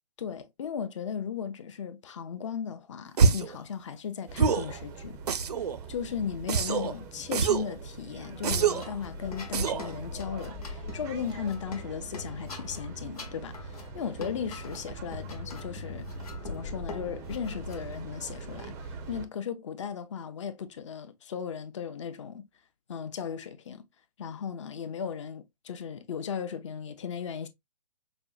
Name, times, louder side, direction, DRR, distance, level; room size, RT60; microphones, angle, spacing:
voice 1, 0.2-5.2 5.9-16.1 16.4-18.7 19.1-22.4 22.9-23.8 24.2-27.5, left 7 dB, 45° left, 0.6 m, -36 dB
sound 1, 3.2-3.6 4.4-4.7 5.3-5.8 6.5-6.9 7.3-7.7 8.4-8.9 9.5-9.9, right 5 dB, 70° right, 0.5 m, -25 dB
sound 2, 4.3-19.3, right 4 dB, 10° right, 0.4 m, -43 dB
sound 3, 8.4-18.6, left 4 dB, 65° left, 1.0 m, -43 dB
5.1 x 2.1 x 2.3 m
figure-of-eight pair, 130°, 21 cm